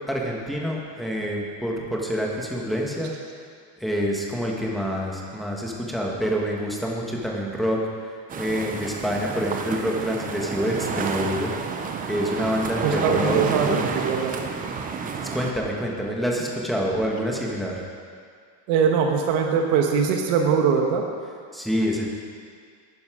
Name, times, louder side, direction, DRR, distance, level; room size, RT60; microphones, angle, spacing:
voice 1, 0.1-3.1 3.8-7.8 8.4-11.5 12.1-13.4 13.7-13.9 15.3-17.8 21.5-22.1, equal, ahead, -2 dB, 1.4 m, -27 dB
sound 1, 8.3-15.5, right 5 dB, 20° right, 0.4 m, -30 dB
voice 2, 12.8-13.8 14.0-14.3 18.7-21.0, right 6 dB, 85° right, 2 dB, 1.4 m, -21 dB
12.0 x 10.0 x 5.0 m, 2.1 s
cardioid pair, 160°, 48 cm